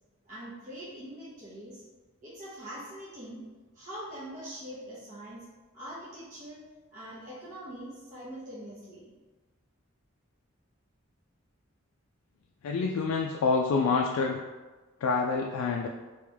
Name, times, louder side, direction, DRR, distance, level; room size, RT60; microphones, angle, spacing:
voice 1, 0.2-1.8 2.2-3.4 3.7-5.4 5.7-6.6 6.9-9.1, equal, 35° right, -10 dB, 0.9 m, -43 dB
voice 2, 12.6-14.4 15.0-15.9, left 4 dB, 80° left, 1 dB, 0.3 m, -27 dB
3.2 x 2.9 x 3.4 m, 1.3 s
head